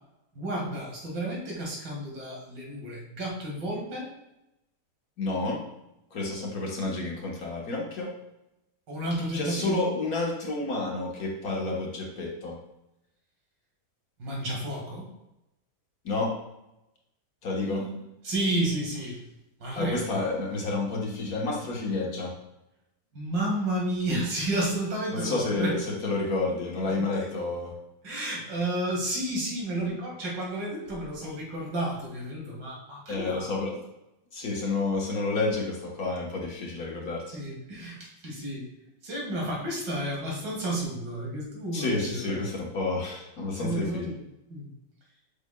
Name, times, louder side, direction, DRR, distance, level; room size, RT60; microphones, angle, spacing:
voice 1, 0.3-4.1 8.9-9.9 14.2-15.1 17.6-18.0 18.2-19.2 19.6-20.3 23.1-25.8 27.0-27.3 28.0-33.6 37.3-38.6 39.0-42.5 43.5-44.2 44.5-44.7, right 1 dB, 85° right, -2 dB, 2.6 m, -31 dB
voice 2, 5.2-5.6 6.1-8.1 9.3-12.6 16.1-16.4 17.4-17.9 19.7-22.3 25.1-27.7 33.1-33.8 34.3-37.4 41.7-44.1, left 3 dB, 55° left, -2 dB, 1.6 m, -30 dB
7.3 x 6.0 x 2.3 m, 0.91 s
omnidirectional pair, 1.9 m